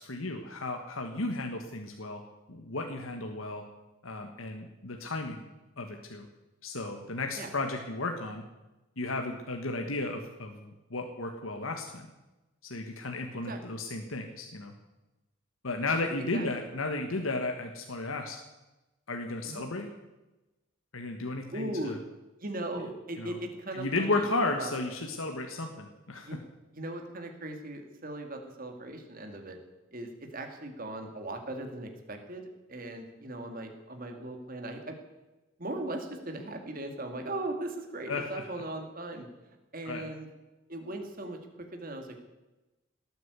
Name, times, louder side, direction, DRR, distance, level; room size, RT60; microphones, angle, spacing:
voice 1, 0.0-2.2 2.5-3.6 4.0-5.4 5.8-6.3 6.6-8.4 9.0-12.1 12.6-14.7 15.6-18.4 19.1-19.9 20.9-22.0 23.2-23.4 23.7-26.4 38.1-38.5 39.8-40.0, left 2 dB, 80° left, 3 dB, 1.6 m, -34 dB
voice 2, 16.0-16.5 19.4-19.6 21.5-21.9 22.4-24.3 24.6-24.7 26.2-26.4 26.7-29.6 29.9-35.0 35.6-39.3 39.7-40.3 40.7-42.2, right 1 dB, 45° right, 4 dB, 2.4 m, -38 dB
18.5 x 9.2 x 8.2 m, 1.0 s
head